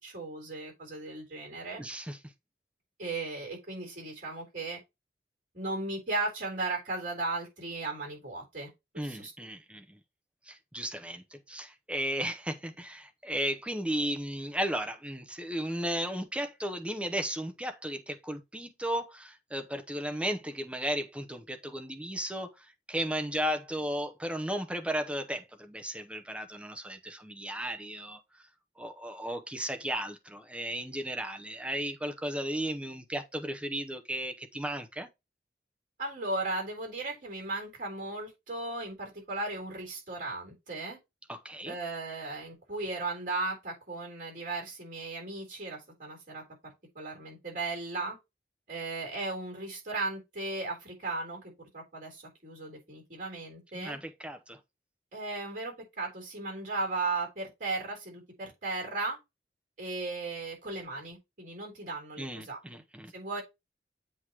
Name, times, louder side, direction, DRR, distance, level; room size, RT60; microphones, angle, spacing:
voice 1, 0.0-1.8 3.0-4.8 5.5-9.3 36.0-41.0 41.7-46.4 47.0-48.2 48.7-54.0 55.1-59.2 59.8-62.6 63.1-63.4, right 3 dB, 50° right, 3.7 m, -36 dB
voice 2, 1.8-2.2 9.0-10.0 10.5-28.4 28.8-35.1 41.3-41.7 53.7-54.6 62.2-63.1, equal, 5° right, 0.7 m, -35 dB
7.9 x 3.0 x 4.7 m
head